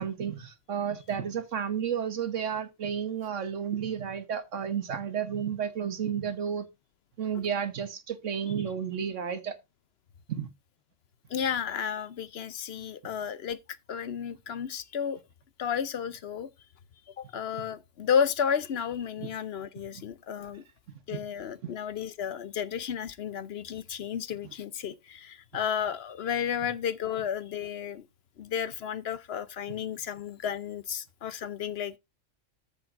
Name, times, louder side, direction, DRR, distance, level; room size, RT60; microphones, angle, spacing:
voice 1, 0.0-6.6 7.2-9.5 10.3-10.5 19.2-19.3 21.1-21.2, right 8 dB, 90° right, 1.5 m, -32 dB
voice 2, 11.3-13.6 13.9-15.2 15.6-16.5 17.2-20.6 21.1-28.1 28.4-32.0, left 8 dB, 65° left, 0.9 m, -32 dB
14.0 x 7.0 x 2.5 m
omnidirectional pair, 1.2 m